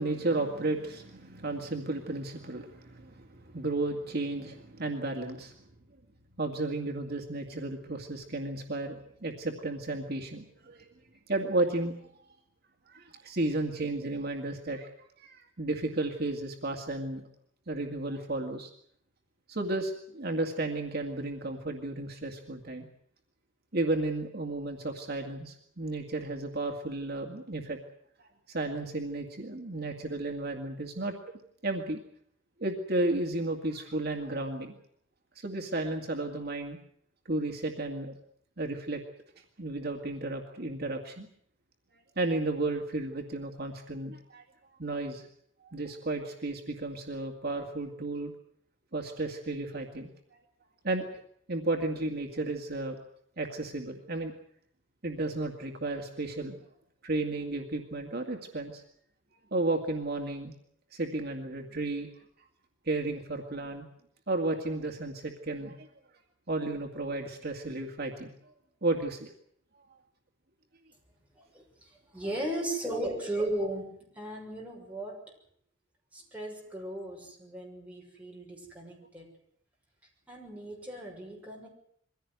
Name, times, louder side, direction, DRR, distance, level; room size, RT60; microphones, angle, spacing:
voice 1, 0.0-5.6 6.4-10.9 11.3-11.9 12.9-17.3 17.7-18.7 19.5-22.9 23.7-27.8 28.5-31.1 31.6-32.0 32.6-34.8 35.4-36.8 37.3-38.2 38.6-39.0 39.6-41.3 42.2-44.4 44.8-45.2 45.6-48.3 48.9-50.1 50.8-51.1 51.5-53.0 53.4-54.3 55.0-56.6 57.0-58.8 59.5-60.5 60.9-62.1 62.9-63.9 64.3-65.9 66.5-68.5 68.8-69.3 69.7-69.8, right 2 dB, 55° right, 3 dB, 2.2 m, -33 dB
voice 2, 71.3-75.2 76.1-79.3 80.3-81.7, right 1 dB, 10° right, -1 dB, 6.6 m, -36 dB
23.0 x 16.0 x 9.5 m, 0.68 s
head